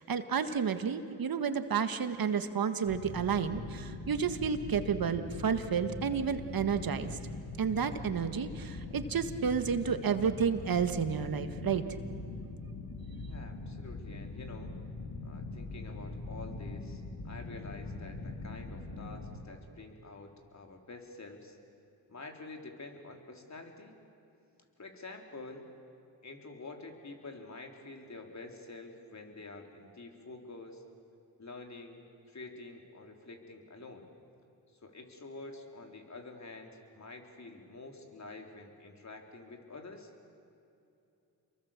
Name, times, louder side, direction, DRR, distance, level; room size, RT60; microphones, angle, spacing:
voice 1, 0.0-7.2 7.6-11.8, right 6 dB, 55° right, 9 dB, 1.8 m, -31 dB
sound 1, 2.8-19.4, left 2 dB, 65° left, 3.1 m, -42 dB
voice 2, 13.2-14.7 15.2-21.6 22.1-24.0 24.8-25.7 26.2-30.8 31.4-34.1 34.8-40.1, left 3 dB, 40° left, 2 dB, 4.1 m, -48 dB
28.5 x 23.0 x 7.4 m, 2.7 s
supercardioid pair, 55°, 42 cm